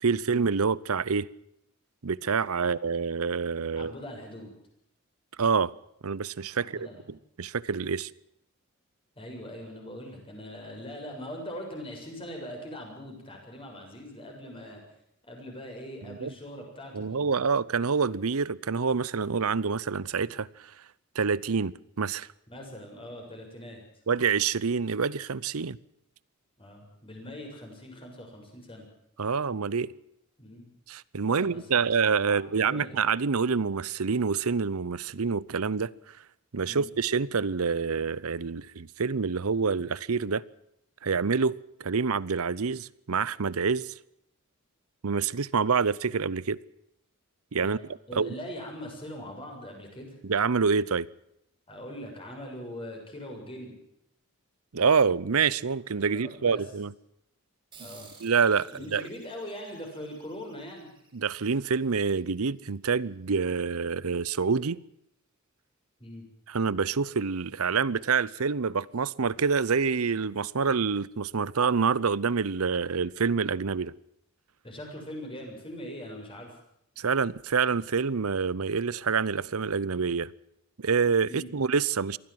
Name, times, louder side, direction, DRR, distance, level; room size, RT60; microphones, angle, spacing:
voice 1, 0.0-1.3 2.0-3.9 5.4-5.7 6.0-8.1 16.1-16.3 16.9-20.7 21.1-22.3 24.1-25.8 29.2-29.9 30.9-35.9 36.5-40.4 41.0-43.9 45.0-46.6 47.5-47.8 48.1-48.3 50.2-51.1 54.7-56.9 58.2-59.0 61.1-64.8 66.5-73.9 77.0-80.3 80.8-82.2, right 5 dB, 80° right, 0.7 m, -27 dB
voice 2, 3.8-4.5 6.6-7.0 9.2-14.8 15.3-17.3 22.5-23.8 26.6-28.8 30.4-30.7 31.2-31.9 32.3-33.0 36.7-36.9 47.6-47.8 48.1-50.2 51.7-53.7 56.1-56.6 57.8-58.1 58.7-60.9 66.0-66.2 74.6-76.5 81.3-81.5, equal, 25° left, 7.3 m, -41 dB
sound 1, 57.7-62.7, right 5 dB, 20° right, 5.0 m, -55 dB
23.0 x 16.0 x 7.6 m
head